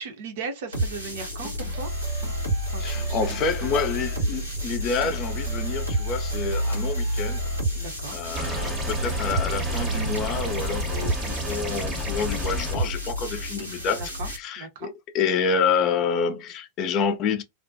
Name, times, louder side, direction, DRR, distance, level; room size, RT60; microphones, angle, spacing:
voice 1, 0.0-1.9 2.7-3.4 7.7-8.2 13.9-14.3 14.6-14.9, right 4 dB, 55° right, 0.6 m, -37 dB
sound 1, 0.7-14.4, right 1 dB, 90° right, 1.2 m, -29 dB
sound 2, 1.8-9.0, left 4 dB, 15° left, 0.9 m, -46 dB
voice 2, 2.8-7.4 8.1-17.4, left 5 dB, 35° left, 0.4 m, -28 dB
sound 3, 8.4-12.8, right 2 dB, 20° right, 0.7 m, -32 dB
2.4 x 2.2 x 2.4 m
figure-of-eight pair, 90°, 0 cm